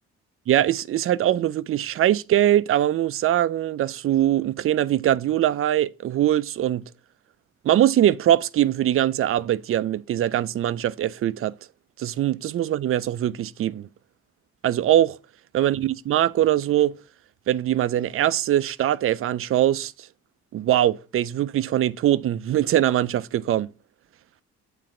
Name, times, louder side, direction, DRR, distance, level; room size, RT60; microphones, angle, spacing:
voice 1, 0.5-6.8 7.6-11.5 12.0-13.9 14.6-15.2 15.5-17.0 17.5-20.1 20.5-23.7, right 12 dB, 45° right, 0.4 m, -22 dB
8.7 x 3.3 x 3.7 m
cardioid pair, 90°, 30 cm